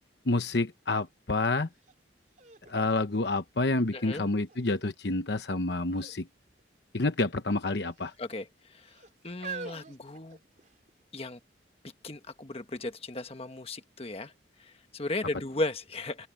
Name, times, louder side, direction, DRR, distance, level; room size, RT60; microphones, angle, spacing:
voice 1, 0.3-1.7 2.7-6.3 6.9-8.1, left 2 dB, 60° left, 1.0 m, -28 dB
sound 1, 1.8-1.9 2.4-3.9 4.5-5.0 5.8-6.2 6.5-6.6 7.5-8.2 8.9-10.9 11.7-11.8, right 5 dB, 40° right, 3.8 m, -45 dB
voice 2, 3.9-4.2 8.2-9.0 9.2-10.4 11.1-11.4 12.0-14.3 14.6-16.3, left 2 dB, 30° left, 1.3 m, -36 dB
open air
head